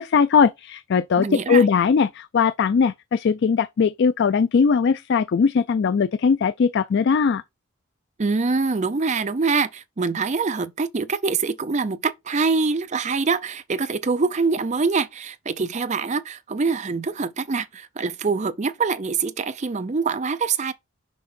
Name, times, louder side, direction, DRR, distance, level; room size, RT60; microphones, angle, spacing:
voice 1, 0.0-7.4, left 6 dB, 55° left, 0.3 m, -20 dB
voice 2, 1.2-1.6 8.2-20.7, right 4 dB, 35° right, 0.5 m, -24 dB
6.3 x 5.2 x 4.3 m
head